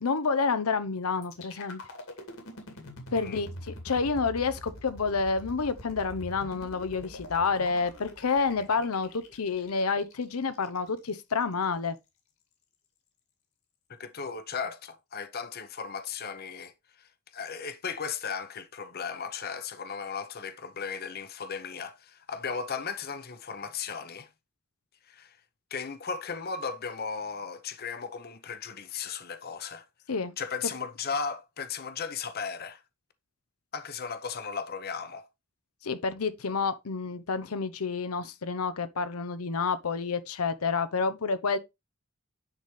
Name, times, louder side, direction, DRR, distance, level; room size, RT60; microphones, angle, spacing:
voice 1, 0.0-1.8 3.1-12.0 30.1-30.3 35.8-41.6, left 4 dB, 85° left, 0.7 m, -29 dB
sound 1, 1.2-11.2, equal, 70° left, 2.3 m, -45 dB
voice 2, 13.9-24.3 25.0-25.4 25.7-29.8 30.4-32.8 33.7-35.3, left 6 dB, 45° left, 0.8 m, -36 dB
9.9 x 4.2 x 3.2 m
head